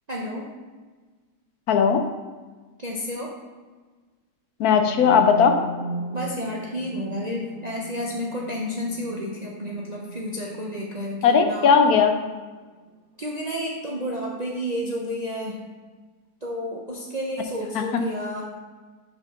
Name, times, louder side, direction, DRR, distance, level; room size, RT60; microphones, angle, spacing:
voice 1, 0.1-0.5 2.8-3.3 6.1-11.7 13.2-15.6 16.4-18.4, equal, 45° right, -3 dB, 0.5 m, -31 dB
voice 2, 1.7-2.0 4.6-5.5 11.2-12.1 17.7-17.8, left 6 dB, 70° left, 6 dB, 1.1 m, -17 dB
sound 1, 4.8-12.6, right 2 dB, 60° right, 1.2 m, -37 dB
5.1 x 4.5 x 5.8 m, 1.3 s
omnidirectional pair, 1.7 m